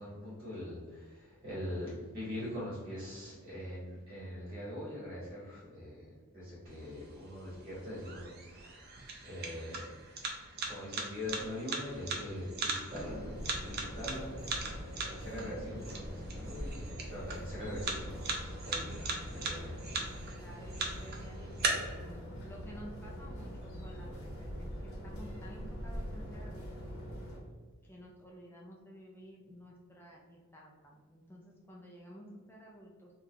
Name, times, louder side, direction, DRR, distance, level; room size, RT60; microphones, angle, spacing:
voice 1, 0.0-8.9 9.2-9.9 10.7-13.3 13.6-14.3 15.0-19.8, left 1 dB, 20° right, -8 dB, 1.2 m, -42 dB
sound 1, 6.7-21.7, right 4 dB, 45° right, 0.5 m, -41 dB
voice 2, 12.9-13.2 15.3-15.8 20.4-24.5 24.8-26.9 27.8-33.1, equal, 10° left, -3 dB, 0.4 m, -52 dB
sound 2, 13.0-27.4, equal, 65° left, 0.9 m, -43 dB
3.8 x 2.3 x 2.8 m, 1.4 s
head